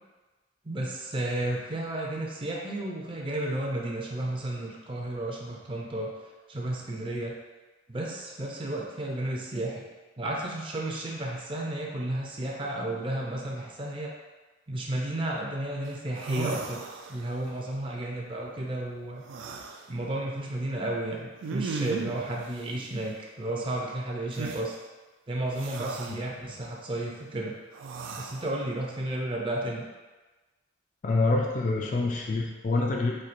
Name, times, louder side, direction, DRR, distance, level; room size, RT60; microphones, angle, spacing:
voice 1, 0.6-6.1 6.5-7.3 7.9-9.8 10.2-14.1 14.7-16.8 17.1-19.2 19.9-24.8 25.3-27.5 28.2-29.8, right 1 dB, 30° right, -2 dB, 0.5 m, -32 dB
sound 1, 15.9-16.0 16.1-17.4 19.2-19.8 21.4-22.3 24.3-24.6 25.6-26.2 27.7-28.5, right 4 dB, 90° right, 0.4 m, -36 dB
voice 2, 31.0-33.2, left 3 dB, 40° left, 0 dB, 0.3 m, -26 dB
4.4 x 2.7 x 2.5 m, 1.2 s
head